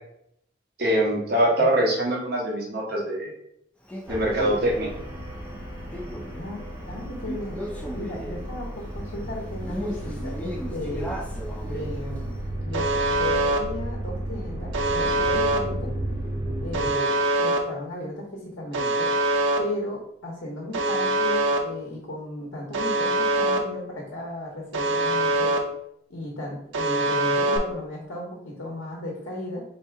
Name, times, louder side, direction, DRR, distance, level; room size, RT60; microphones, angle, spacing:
voice 1, 0.8-3.3 4.1-4.9, right 1 dB, 55° right, -2 dB, 1.0 m, -23 dB
Male speech man speaking, 3.9-12.4, equal, 5° left, 0.4 m, -38 dB
sound 1, 4.1-16.9, right 1 dB, 25° right, 1.6 m, -34 dB
voice 2, 6.4-7.6 7.9-11.2 11.6-15.9 16.6-19.1 19.6-25.5 26.1-29.6, left 1 dB, 75° left, -2 dB, 1.0 m, -35 dB
Alarm, 12.7-13.6 14.7-15.6 16.7-17.6 18.7-19.6 20.7-21.6 22.7-23.6 24.7-25.6 26.7-27.6, right 2 dB, 75° right, 0.6 m, -23 dB
3.5 x 2.8 x 4.6 m, 0.74 s
head